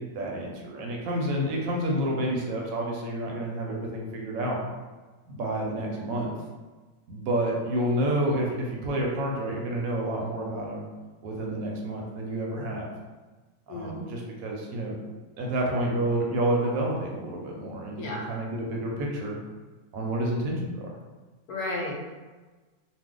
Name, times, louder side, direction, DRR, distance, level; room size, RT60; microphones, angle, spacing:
voice 1, 0.1-4.6 5.2-6.3 7.1-10.8 11.2-12.9 13.7-15.0 15.4-19.4 19.9-20.9, right 1 dB, 70° right, -1 dB, 0.9 m, -29 dB
voice 2, 13.7-14.0 18.0-18.3 21.5-22.1, left 1 dB, 80° left, -2 dB, 1.1 m, -34 dB
2.5 x 2.2 x 3.6 m, 1.3 s
omnidirectional pair, 1.6 m